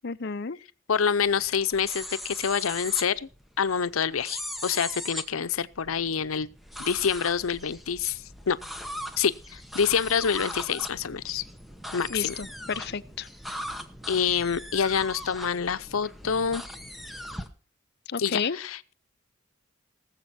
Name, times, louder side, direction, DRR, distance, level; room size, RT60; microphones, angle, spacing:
voice 1, 0.0-0.6 12.1-13.3 18.1-18.6, left 5 dB, 55° left, 0.6 m, -31 dB
voice 2, 0.9-3.3 3.6-6.5 6.8-8.6 9.2-11.4 11.9-12.4 14.1-16.6 18.2-18.9, left 6 dB, 90° left, 0.7 m, -27 dB
sound 1, 1.2-17.5, left 1 dB, ahead, 1.1 m, -39 dB
19.0 x 7.4 x 4.2 m
head